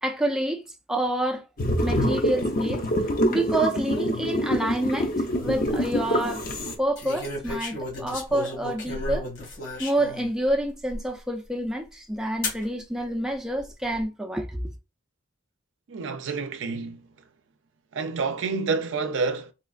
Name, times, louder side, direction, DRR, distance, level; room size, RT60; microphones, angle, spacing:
voice 1, 0.0-1.5 1.8-2.8 3.3-6.4 6.8-9.3 9.8-14.7, right 1 dB, 5° right, 0.4 m, -28 dB
sound 1, 1.6-6.8, equal, 45° left, 0.6 m, -25 dB
sound 2, 5.3-5.7 7.0-10.3 10.9-11.0 12.4-12.6 13.5-14.0, left 2 dB, 75° left, 1.8 m, -33 dB
voice 2, 15.9-17.1 17.9-19.5, right 4 dB, 70° right, 0.5 m, -28 dB
4.2 x 2.3 x 2.4 m
head